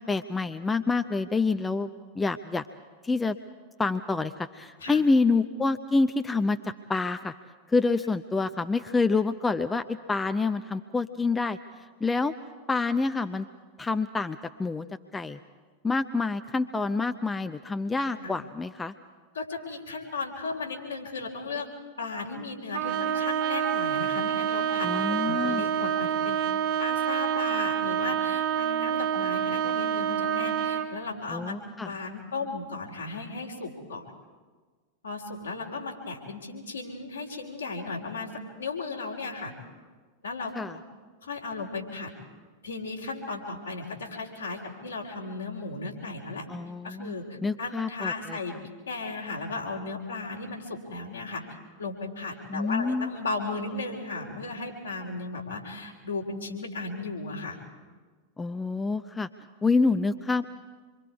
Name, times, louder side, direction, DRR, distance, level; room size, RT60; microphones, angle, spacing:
voice 1, 0.0-2.6 3.0-3.4 3.8-7.3 7.7-11.6 12.0-12.4 12.7-13.5 13.8-14.9 15.1-15.4 15.8-18.9 24.8-25.7 31.3-31.9 40.5-40.8 46.5-47.1 47.4-48.4 52.5-53.1 58.4-59.3 59.6-60.5, left 3 dB, 10° left, 10 dB, 0.6 m, -27 dB
voice 2, 19.3-21.7 22.0-26.4 26.8-31.6 31.8-34.0 35.0-38.3 38.6-39.5 40.2-40.8 41.2-42.1 42.6-46.5 46.8-48.5 48.9-51.4 51.8-57.6, left 3 dB, 75° left, -1 dB, 3.7 m, -35 dB
Trumpet, 22.7-30.9, right 9 dB, 45° right, 1.2 m, -27 dB
26.5 x 24.0 x 4.8 m, 1.4 s
figure-of-eight pair, 90°, 0 cm